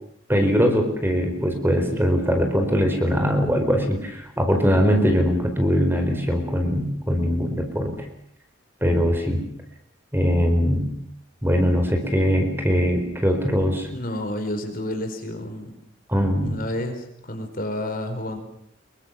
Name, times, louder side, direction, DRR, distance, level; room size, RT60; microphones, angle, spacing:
voice 1, 0.3-7.9 8.8-9.4 10.1-10.9 11.4-13.9 16.1-16.6, equal, 10° right, 5 dB, 4.6 m, -21 dB
voice 2, 13.9-15.7 16.4-18.4, left 1 dB, 45° left, 6 dB, 4.8 m, -30 dB
26.5 x 23.5 x 7.4 m, 0.67 s
head